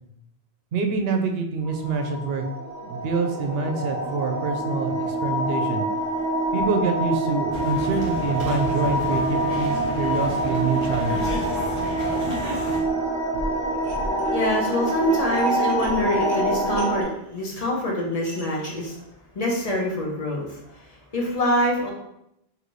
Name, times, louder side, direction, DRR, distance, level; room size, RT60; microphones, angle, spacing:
voice 1, 0.7-2.4 2.8-5.8 6.5-11.4, right 4 dB, 70° right, 4 dB, 0.8 m, -26 dB
sound 1, 1.7-17.0, right 1 dB, 50° right, 1.1 m, -26 dB
sound 2, 7.5-12.8, left 1 dB, 85° left, 1.6 m, -33 dB
Dishes pots and pans, 13.7-14.3 14.7-18.9, right 1 dB, 35° right, 1.1 m, -45 dB
voice 2, 14.3-19.0 19.3-21.9, left 1 dB, 40° left, -2 dB, 0.9 m, -25 dB
3.9 x 2.9 x 3.1 m, 0.80 s
omnidirectional pair, 1.1 m